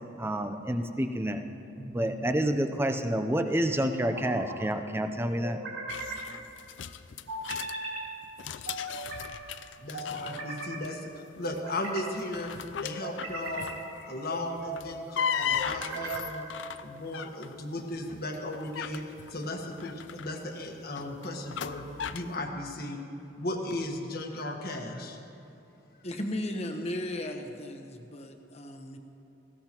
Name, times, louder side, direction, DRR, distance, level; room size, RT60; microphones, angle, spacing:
voice 1, 0.2-1.4 1.9-5.6, right 1 dB, 15° right, 7 dB, 0.6 m, -28 dB
sound 1, 1.8-2.4 3.8-4.6 5.4-6.2 7.3-8.0 8.7-9.3 9.9-10.8 11.4-12.1 12.8-13.7 14.3-14.8 15.6-16.4, right 2 dB, 85° right, 2.5 m, -38 dB
sound 2, 5.9-7.7 8.2-10.9 11.2-11.6 12.1-13.9 14.6-17.5 18.1-22.3, left 7 dB, 80° left, 0.5 m, -37 dB
voice 2, 9.8-16.4 16.8-21.9 22.1-23.0 23.4-25.2, left 1 dB, 55° left, 3 dB, 1.3 m, -36 dB
voice 3, 26.0-29.0, left 1 dB, 35° left, 4 dB, 1.0 m, -35 dB
19.0 x 16.0 x 3.0 m, 2.9 s
head